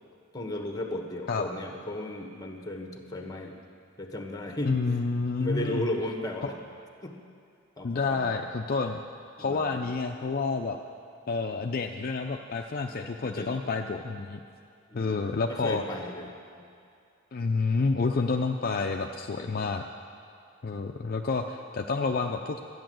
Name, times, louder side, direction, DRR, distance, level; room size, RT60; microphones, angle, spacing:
voice 1, 0.3-3.6 4.0-4.7 5.4-6.6 7.0-7.2 7.8-8.4 9.4-9.8 12.9-13.6 14.9-16.7 19.4-19.5, left 1 dB, 20° left, 3 dB, 1.3 m, -35 dB
voice 2, 4.7-5.8 7.8-9.0 9.4-10.8 11.3-14.4 14.9-15.8 17.3-19.8 20.6-22.6, left 4 dB, 50° left, 3 dB, 0.5 m, -29 dB
12.5 x 9.4 x 7.7 m, 2.4 s
head